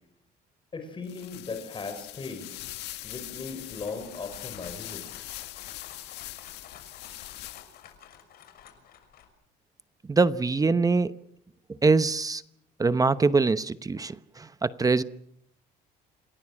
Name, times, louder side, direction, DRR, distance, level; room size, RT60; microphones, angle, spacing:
voice 1, 0.7-2.5 3.0-5.0, left 4 dB, 30° left, 6 dB, 5.9 m, -37 dB
sound 1, 1.0-7.9, left 16 dB, 85° left, 1.6 m, -42 dB
sound 2, 3.5-9.3, left 9 dB, 65° left, 6.1 m, -52 dB
voice 2, 10.1-11.1 11.8-12.4 12.8-15.0, right 4 dB, 20° right, 14 dB, 0.9 m, -23 dB
28.0 x 19.0 x 7.5 m, 0.75 s
cardioid pair, 110°, 17 cm